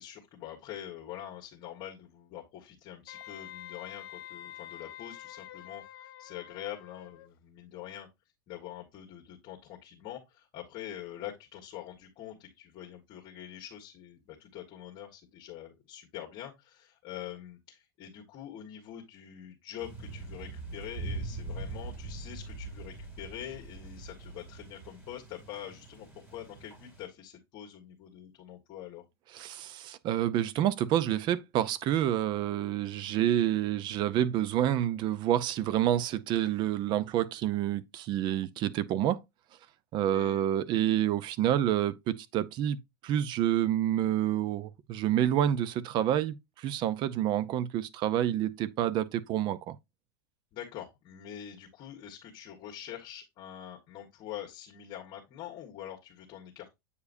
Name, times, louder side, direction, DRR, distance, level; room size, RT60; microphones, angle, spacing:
voice 1, 0.0-8.1 8.5-29.0 40.1-40.5 50.5-56.7, left 11 dB, 40° left, 1.6 m, -45 dB
Wind instrument woodwind instrument, 3.1-7.3, left 13 dB, 70° left, 1.1 m, -47 dB
sound 1, 19.8-27.1, right 3 dB, 20° right, 2.8 m, -42 dB
voice 2, 29.3-39.2 39.9-42.8 43.0-49.7, right 11 dB, 40° right, 0.6 m, -28 dB
8.3 x 4.8 x 2.6 m
supercardioid pair, 130°, 12 cm